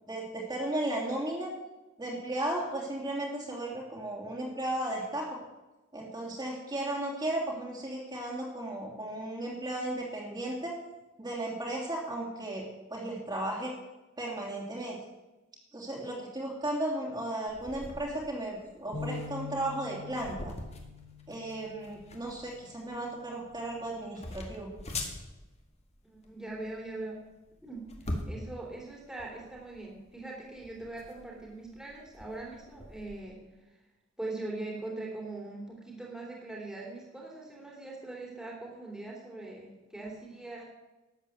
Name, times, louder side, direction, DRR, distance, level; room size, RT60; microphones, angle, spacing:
voice 1, 0.1-1.5 2.0-5.3 5.9-10.7 11.2-12.6 12.9-13.7 14.2-15.0 15.7-20.5 21.3-24.7, right 1 dB, 20° right, -3 dB, 3.0 m, -35 dB
sound 1, 17.5-33.2, left 1 dB, 35° left, 2.0 m, -44 dB
sound 2, 18.9-25.2, left 5 dB, 85° left, 3.2 m, -46 dB
voice 2, 26.0-27.2 27.6-33.4 34.2-40.6, right 2 dB, 5° right, -3 dB, 3.1 m, -41 dB
12.5 x 8.2 x 8.0 m, 1.1 s
head